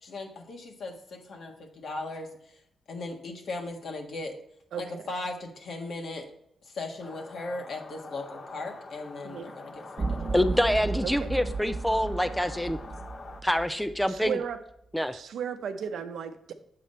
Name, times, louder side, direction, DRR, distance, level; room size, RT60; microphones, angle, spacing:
voice 1, 0.0-2.6 2.9-4.4 4.8-6.3 6.6-10.4, left 2 dB, 65° left, 3 dB, 1.5 m, -38 dB
voice 2, 4.7-5.1 9.2-9.5 11.0-11.3 14.1-14.6 15.1-16.5, right 7 dB, 80° right, 8 dB, 0.7 m, -35 dB
sound 1, 7.0-13.4, left 3 dB, 40° left, 0.7 m, -45 dB
sound 2, 10.0-14.3, right 3 dB, 40° right, 1.0 m, -34 dB
voice 3, 10.3-12.8 13.4-14.4 14.9-15.1, equal, 5° left, 10 dB, 0.4 m, -26 dB
7.6 x 5.2 x 4.2 m, 0.74 s
cardioid pair, 115°, 0 cm